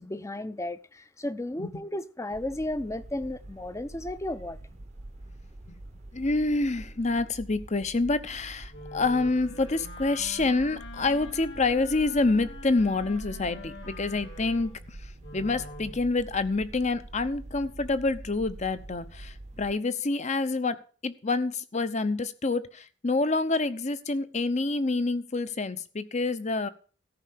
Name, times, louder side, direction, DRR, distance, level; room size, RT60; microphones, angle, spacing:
voice 1, 0.0-4.6, left 1 dB, 15° left, 0.6 m, -34 dB
sound 1, 2.3-19.7, right 1 dB, 40° right, 0.8 m, -45 dB
voice 2, 6.1-15.0 15.3-26.7, left 3 dB, 40° left, 0.9 m, -27 dB
Wind instrument woodwind instrument, 8.7-16.1, left 1 dB, 70° left, 2.8 m, -44 dB
14.0 x 5.6 x 8.5 m
head